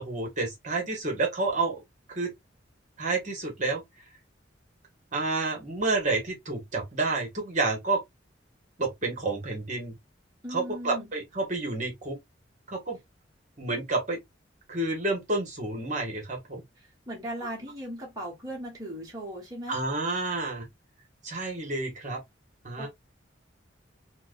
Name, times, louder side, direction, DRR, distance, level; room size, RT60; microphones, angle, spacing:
voice 1, 0.0-1.8 2.1-2.3 3.0-3.8 5.1-8.0 8.8-9.9 10.5-12.2 12.7-13.0 13.6-14.2 14.7-16.6 19.7-20.6 21.2-22.2 22.6-22.9, right 3 dB, 40° right, 1.2 m, -29 dB
voice 2, 10.4-11.1 16.8-19.8 22.8-22.9, equal, 20° right, 1.2 m, -38 dB
4.4 x 2.2 x 2.4 m
head